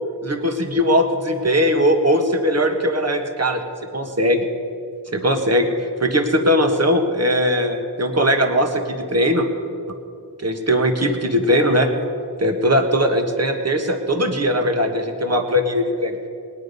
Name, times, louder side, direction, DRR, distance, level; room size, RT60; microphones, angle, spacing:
voice 1, 0.2-3.6 3.9-4.4 5.1-9.5 10.4-11.9 12.4-16.2, equal, 35° right, 5 dB, 1.6 m, -19 dB
18.5 x 10.0 x 5.4 m, 2.4 s
cardioid pair, 45°, 41 cm